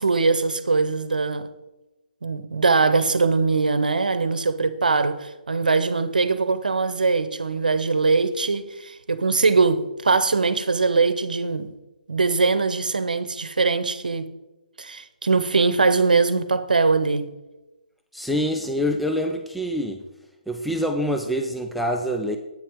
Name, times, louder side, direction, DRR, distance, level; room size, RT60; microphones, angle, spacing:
voice 1, 0.0-1.5 2.2-11.7 12.1-14.3 14.8-17.3, right 4 dB, 80° right, 0.8 m, -21 dB
voice 2, 18.1-20.0 20.5-22.4, equal, ahead, 0.4 m, -25 dB
9.4 x 8.7 x 3.7 m
figure-of-eight pair, 145°, 4 cm